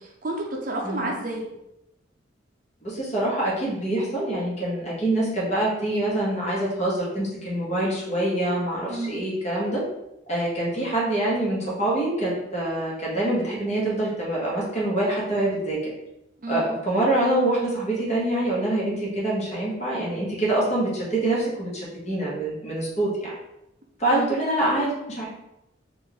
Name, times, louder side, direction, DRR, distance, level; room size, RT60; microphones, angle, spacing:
voice 1, 0.0-1.5 8.9-9.2 16.4-16.7 24.1-24.3, right 2 dB, 45° right, 0 dB, 0.6 m, -30 dB
voice 2, 2.8-9.8 10.3-15.9 16.5-23.3 24.0-25.2, right 1 dB, 35° left, -6 dB, 1.3 m, -25 dB
4.3 x 2.6 x 3.4 m, 0.88 s
head